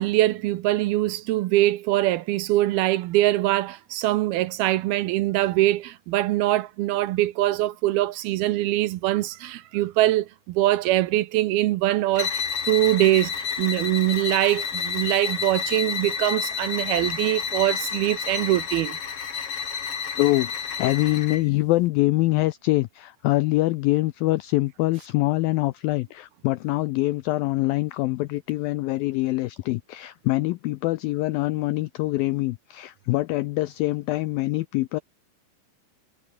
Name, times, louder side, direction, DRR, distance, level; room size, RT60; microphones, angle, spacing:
voice 1, 0.0-19.0, right 16 dB, 75° right, 2.5 m, -23 dB
sound 1, 12.1-21.5, left 6 dB, 40° left, 3.0 m, -30 dB
voice 2, 20.2-35.0, left 19 dB, 85° left, 2.0 m, -24 dB
omnidirectional pair, 4.8 m